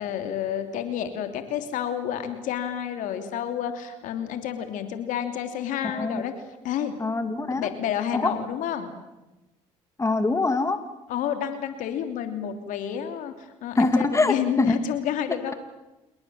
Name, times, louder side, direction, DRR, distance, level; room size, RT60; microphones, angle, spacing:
voice 1, 0.0-6.3 6.6-6.9 7.5-8.9 11.1-13.3 13.6-15.5, left 9 dB, 75° left, 7 dB, 3.1 m, -29 dB
voice 2, 5.8-6.2 7.0-7.7 8.1-8.3 10.0-10.8 13.8-14.8, left 3 dB, 20° left, 9 dB, 2.6 m, -23 dB
28.0 x 21.0 x 7.8 m, 1.0 s
supercardioid pair, 70°, 14 cm